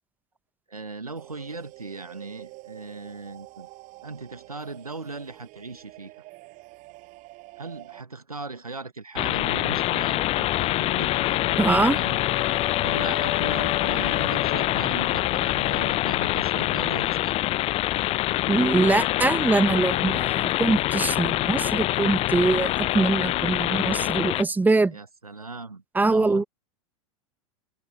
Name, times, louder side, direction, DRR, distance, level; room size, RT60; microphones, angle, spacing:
voice 1, 0.7-3.7 4.0-6.1 7.6-12.2 12.8-17.4 24.9-26.4, right 3 dB, 90° right, 1.6 m, -38 dB
sound 1, 1.2-8.0, right 23 dB, 45° right, 7.3 m, -47 dB
sound 2, 9.2-24.4, left 16 dB, 35° left, 0.6 m, -25 dB
sound 3, 11.1-16.1, left 8 dB, 75° left, 0.7 m, -35 dB
voice 2, 11.6-12.0 18.5-25.0 25.9-26.4, right 3 dB, 10° right, 1.0 m, -23 dB
figure-of-eight pair, 85°, 18 cm